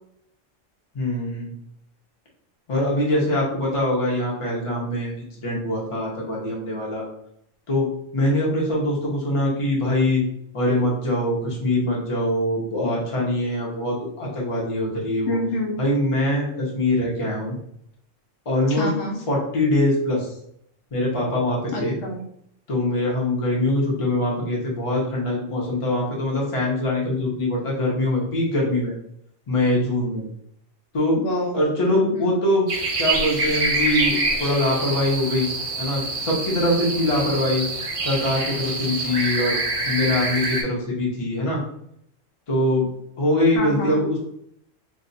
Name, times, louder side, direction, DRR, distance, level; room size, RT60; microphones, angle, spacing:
voice 1, 0.9-1.5 2.7-7.0 7.7-7.9 8.1-10.2 10.5-15.4 15.8-17.6 18.4-18.9 19.3-20.3 20.9-22.0 22.7-28.9 29.5-30.2 30.9-31.2 31.5-32.7 33.0-35.5 35.8-37.6 38.0-39.6 39.8-41.6 42.5-42.9 43.2-44.2, left 1 dB, 30° left, -4 dB, 0.8 m, -23 dB
voice 2, 15.3-15.8 18.7-19.2 21.7-22.2 31.2-31.6 31.9-32.3 43.5-44.0, left 2 dB, 80° left, 0 dB, 1.1 m, -27 dB
sound 1, 32.7-40.6, right 2 dB, 50° right, 0.4 m, -26 dB
2.5 x 2.3 x 3.9 m, 0.72 s
omnidirectional pair, 1.3 m